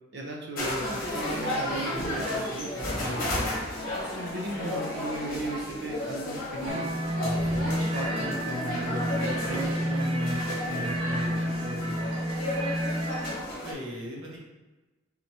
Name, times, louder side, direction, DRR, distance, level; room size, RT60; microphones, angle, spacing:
voice 1, 0.1-3.5 4.1-6.9 7.2-12.1, right 1 dB, 60° right, -1 dB, 0.7 m, -36 dB
sound 1, 0.6-13.7, left 1 dB, 45° left, 1.3 m, -33 dB
sound 2, 6.7-13.3, equal, 25° right, 0.4 m, -30 dB
voice 2, 9.4-9.9 13.6-14.4, equal, 85° right, -3 dB, 1.2 m, -39 dB
4.5 x 4.0 x 2.9 m, 1.2 s
head